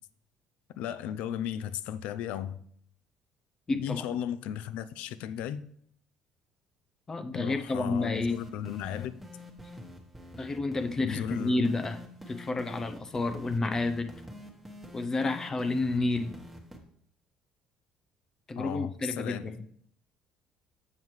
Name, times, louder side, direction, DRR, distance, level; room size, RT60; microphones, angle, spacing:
voice 1, 0.8-2.6 3.7-5.7 7.3-9.2 11.0-11.8 18.6-19.5, left 10 dB, 80° left, 0.5 m, -35 dB
voice 2, 3.7-4.0 7.1-8.4 10.3-12.0 12.3-14.1 14.9-16.4 18.5-19.6, left 2 dB, 25° left, 0.6 m, -30 dB
sound 1, 8.1-16.8, left 1 dB, 10° right, 1.3 m, -47 dB
7.4 x 7.1 x 3.2 m
cardioid pair, 120°, 2 cm